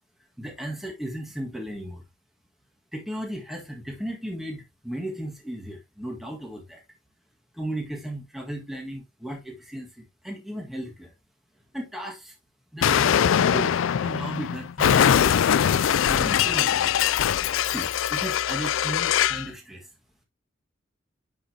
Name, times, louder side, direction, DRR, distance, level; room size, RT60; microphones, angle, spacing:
voice 1, 0.4-2.0 2.9-6.8 7.5-11.1 11.7-12.3 12.7-15.1 16.1-16.9 17.6-19.9, right 1 dB, ahead, 1.6 m, -35 dB
Explosion, 12.8-19.5, left 9 dB, 75° left, 0.4 m, -22 dB
11.0 x 5.1 x 2.8 m
head